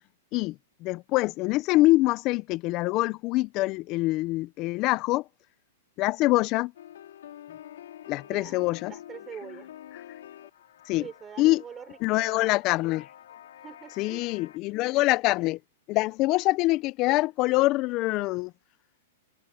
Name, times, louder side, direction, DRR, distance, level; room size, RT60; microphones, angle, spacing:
voice 1, 0.8-5.2 6.0-6.7 8.1-8.9 10.9-11.0 11.4-11.6 12.0-13.1 14.0-15.6 15.9-18.5, left 19 dB, 35° left, 0.6 m, -24 dB
sound 1, 6.8-14.6, left 11 dB, 75° left, 3.7 m, -47 dB
voice 2, 8.2-8.6 8.9-9.8 11.0-12.6 13.5-14.3, right 8 dB, 20° right, 5.6 m, -44 dB
hypercardioid pair, 140°, 0 cm